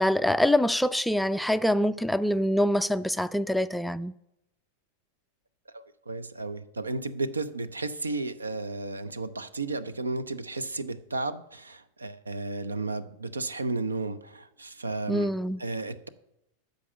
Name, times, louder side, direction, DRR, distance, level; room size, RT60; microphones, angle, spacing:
voice 1, 0.0-4.1 15.1-15.6, left 1 dB, ahead, 0.3 m, -25 dB
voice 2, 5.7-15.3 15.6-16.1, right 3 dB, 75° right, 0.6 m, -33 dB
13.0 x 5.2 x 8.4 m
figure-of-eight pair, 90°, 0 cm